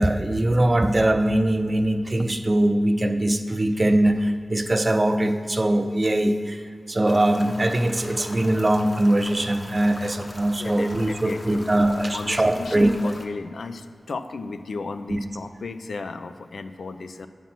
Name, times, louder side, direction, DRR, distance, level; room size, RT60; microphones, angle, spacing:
voice 1, 0.0-13.1 15.1-15.2, right 1 dB, 30° right, 7 dB, 0.5 m, -22 dB
sound 1, 7.1-13.3, left 1 dB, 30° left, 0.9 m, -40 dB
voice 2, 10.6-11.6 12.1-17.3, left 3 dB, 80° left, 9 dB, 0.4 m, -35 dB
8.4 x 5.6 x 6.0 m, 2.1 s
wide cardioid pair, 120°, 0 cm